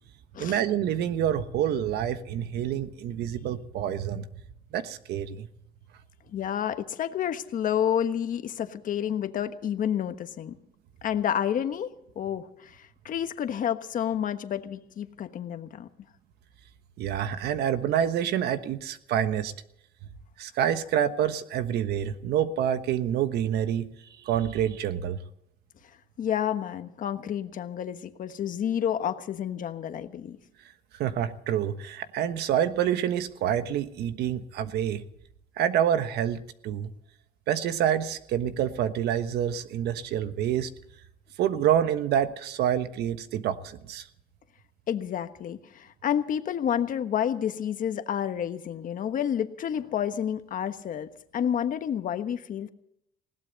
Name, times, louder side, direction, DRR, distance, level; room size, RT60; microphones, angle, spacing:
voice 1, 0.4-4.2 4.7-5.5 17.0-19.5 20.4-23.9 24.2-25.2 31.0-35.0 35.6-36.9 37.5-40.7 41.4-44.1, right 10 dB, 75° right, 10 dB, 1.3 m, -27 dB
voice 2, 6.3-10.5 11.0-15.9 26.2-30.4 44.9-52.7, left 9 dB, 50° left, 9 dB, 1.3 m, -30 dB
20.0 x 17.0 x 4.1 m, 0.77 s
cardioid pair, 110°, 17 cm